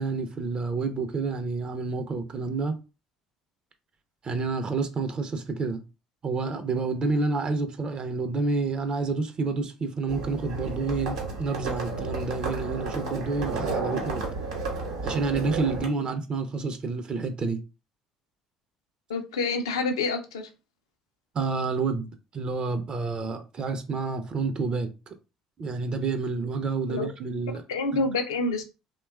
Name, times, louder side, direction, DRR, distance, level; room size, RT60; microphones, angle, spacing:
voice 1, 0.0-2.8 4.2-5.8 6.2-14.2 15.0-17.6 21.3-22.1 22.3-24.9 25.6-27.6, right 4 dB, 40° right, 0.4 m, -29 dB
Livestock farm animals working animals, 10.1-15.9, right 3 dB, 80° right, 0.8 m, -32 dB
voice 2, 19.1-20.5 26.9-27.1 27.7-28.6, left 3 dB, 80° left, 0.4 m, -27 dB
2.8 x 2.2 x 2.2 m
hypercardioid pair, 55°, 2 cm